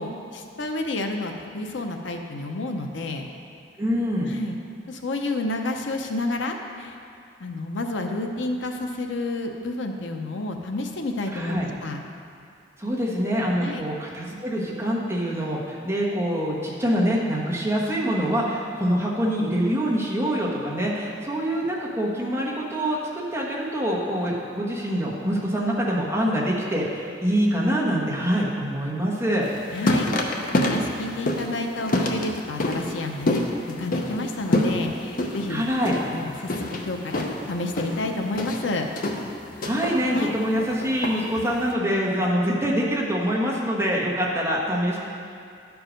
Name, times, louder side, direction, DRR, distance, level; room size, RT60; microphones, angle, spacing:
voice 1, 0.0-3.3 4.3-4.6 4.9-7.0 7.4-12.0 13.6-13.8 29.7-30.1 30.5-33.4 33.8-35.6 36.1-38.9 40.1-40.3, left 2 dB, 85° left, 4 dB, 0.7 m, -30 dB
voice 2, 3.8-4.3 11.3-11.7 12.8-29.5 35.5-36.0 39.6-45.0, equal, 15° right, -5 dB, 1.3 m, -25 dB
sound 1, 29.4-41.7, left 1 dB, 50° left, 0.7 m, -28 dB
11.5 x 4.8 x 5.1 m, 2.4 s
head